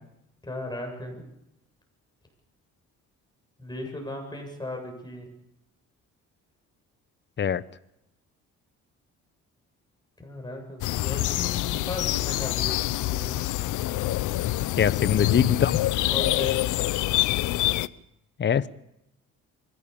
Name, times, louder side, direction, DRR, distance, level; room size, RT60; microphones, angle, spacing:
voice 1, 0.4-1.2 3.6-5.3 10.2-13.5 16.1-16.7, left 1 dB, 15° left, 2 dB, 7.8 m, -37 dB
sound 1, 10.8-17.9, left 16 dB, 80° left, 0.7 m, -26 dB
voice 2, 14.8-15.7 18.4-18.7, left 8 dB, 35° left, 16 dB, 0.8 m, -22 dB
24.0 x 16.5 x 7.1 m, 0.84 s
cardioid pair, 90°, 30 cm